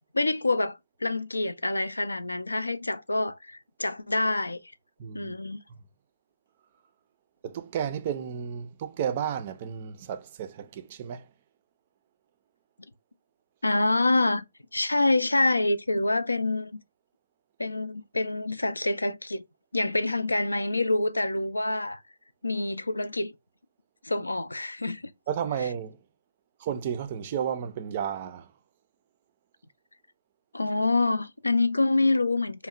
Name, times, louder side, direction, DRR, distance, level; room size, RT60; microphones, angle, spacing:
voice 1, 0.1-4.6 5.1-5.6 13.6-14.4 14.7-16.8 17.6-19.4 19.7-22.0 22.4-23.3 24.0-25.0 30.5-32.7, left 2 dB, 85° left, 0.3 m, -26 dB
voice 2, 5.0-5.3 7.4-11.3 25.3-26.0 26.6-28.5, right 8 dB, 35° right, 0.4 m, -32 dB
2.8 x 2.0 x 2.4 m
figure-of-eight pair, 140°, 0 cm